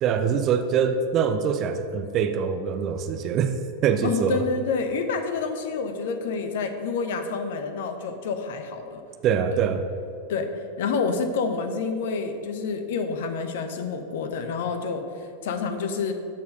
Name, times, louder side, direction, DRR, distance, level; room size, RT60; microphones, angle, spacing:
voice 1, 0.0-3.6 3.8-4.5 9.2-9.8, right 7 dB, 35° right, 8 dB, 0.6 m, -24 dB
voice 2, 4.0-9.0 9.5-9.6 10.3-10.5 10.8-16.1, left 5 dB, 55° left, 8 dB, 0.9 m, -28 dB
13.0 x 4.7 x 5.3 m, 2.7 s
figure-of-eight pair, 90°, 0 cm